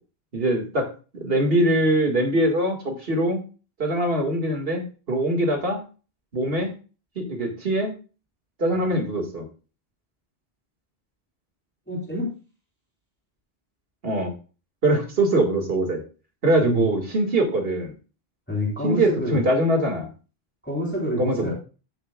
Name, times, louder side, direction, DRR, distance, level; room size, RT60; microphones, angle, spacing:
voice 1, 0.3-0.9 1.2-3.4 3.8-5.8 6.3-6.7 7.2-7.9 8.6-9.5 14.0-14.3 14.8-16.0 16.4-17.9 18.8-20.1 21.2-21.5, right 1 dB, 65° right, 3 dB, 2.3 m, -22 dB
voice 2, 11.9-12.3 16.6-16.8 18.5-19.4 20.6-21.5, left 1 dB, 10° left, -4 dB, 3.3 m, -28 dB
13.0 x 7.1 x 2.4 m, 0.34 s
omnidirectional pair, 1.1 m